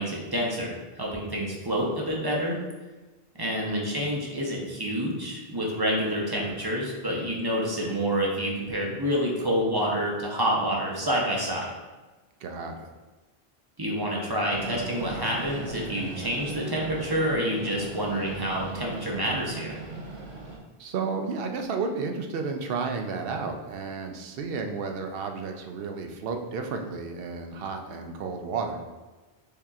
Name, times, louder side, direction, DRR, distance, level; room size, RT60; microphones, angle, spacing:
voice 1, 0.0-2.6 3.4-11.7 13.8-19.8, equal, 25° right, -3 dB, 0.6 m, -28 dB
voice 2, 3.7-4.1 12.4-12.9 20.8-28.8, right 4 dB, 70° right, 5 dB, 0.7 m, -32 dB
Train, 14.5-20.6, right 3 dB, 85° right, 1.0 m, -38 dB
6.5 x 2.8 x 2.4 m, 1.2 s
omnidirectional pair, 1.1 m